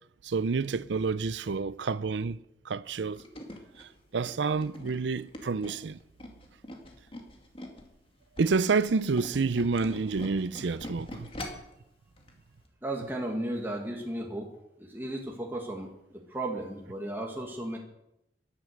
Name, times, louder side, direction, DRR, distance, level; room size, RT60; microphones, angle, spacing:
voice 1, 0.2-2.4 2.7-3.2 3.8-6.0 8.4-11.3, right 4 dB, 90° right, 0.5 m, -29 dB
Tools, 2.9-7.9 8.2-11.7 12.2-12.3 12.6-12.7, left 1 dB, 30° left, 2.4 m, -43 dB
voice 2, 12.8-14.5 14.8-15.9 16.3-17.8, right 1 dB, 10° right, 1.8 m, -34 dB
15.0 x 11.5 x 6.5 m
head